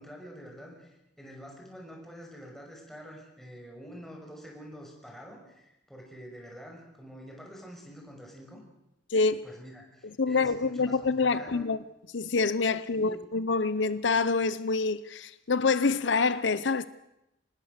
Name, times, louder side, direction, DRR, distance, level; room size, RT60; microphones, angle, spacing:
voice 1, 0.0-8.6 9.4-11.7 12.9-13.2, equal, ahead, 5.9 m, -47 dB
voice 2, 9.1-9.4 10.2-11.8 12.1-16.9, left 4 dB, 75° left, 0.7 m, -26 dB
25.5 x 19.5 x 6.7 m
head